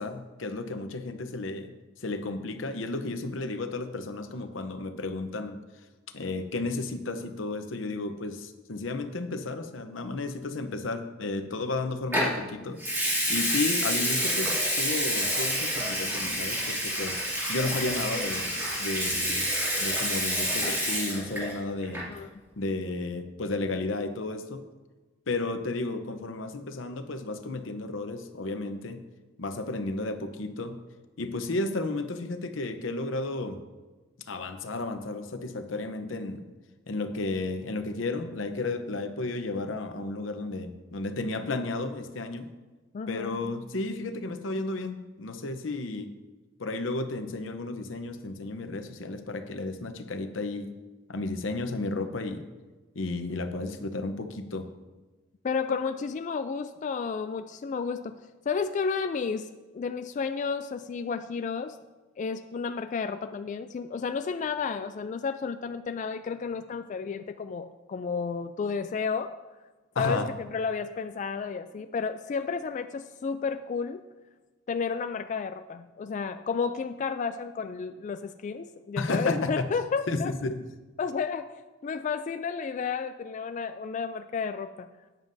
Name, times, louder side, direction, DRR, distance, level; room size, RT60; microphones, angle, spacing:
voice 1, 0.0-1.7 2.0-5.6 6.1-13.0 13.3-17.2 17.5-18.5 18.8-19.4 19.8-22.1 22.6-24.6 25.3-29.0 29.4-30.8 31.2-33.6 34.3-36.5 36.9-42.5 43.1-46.1 46.6-50.7 51.1-52.5 52.9-54.7 69.9-70.3 79.0-79.6 80.1-80.6, left 2 dB, 90° left, 8 dB, 0.8 m, -33 dB
Water tap faucet / Sink (filling or washing) / Liquid, 12.1-12.4 12.8-21.6 21.8-22.2, equal, 10° right, 2.4 m, -28 dB
voice 2, 42.9-43.3 55.4-58.2 58.5-61.8 62.2-69.3 70.0-74.0 74.7-80.3 81.0-81.5 81.8-84.9, left 5 dB, 40° left, 9 dB, 0.3 m, -32 dB
13.0 x 9.1 x 2.7 m, 1.2 s
head